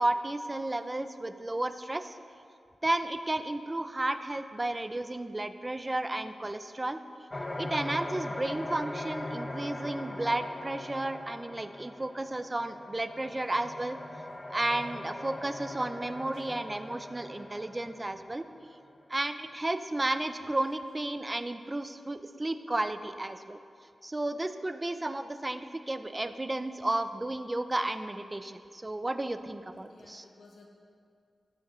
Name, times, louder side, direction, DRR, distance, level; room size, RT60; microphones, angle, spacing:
voice 1, 0.0-2.2 2.8-7.0 7.6-14.0 14.5-18.4 19.1-23.6 24.0-30.2, right 2 dB, 25° right, 10 dB, 0.4 m, -33 dB
sound 1, 7.3-18.8, left 1 dB, 25° left, 0.6 m, -40 dB
voice 2, 29.9-30.7, left 3 dB, 85° left, 0 dB, 1.2 m, -58 dB
14.5 x 6.3 x 3.1 m, 2.3 s
wide cardioid pair, 75°, 0 cm